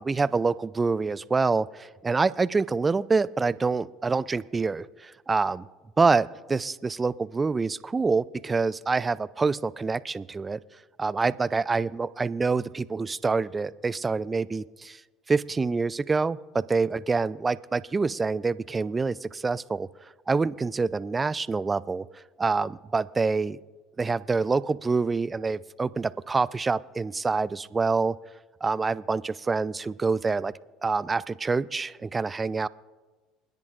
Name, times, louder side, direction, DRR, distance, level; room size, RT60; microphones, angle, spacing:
voice 1, 0.0-5.7 6.0-10.6 11.0-15.0 15.3-23.6 24.0-28.2 28.6-30.5 30.8-32.7, right 4 dB, 25° right, 19 dB, 0.5 m, -26 dB
28.5 x 10.5 x 2.5 m, 1.3 s
hypercardioid pair, 65°, 0 cm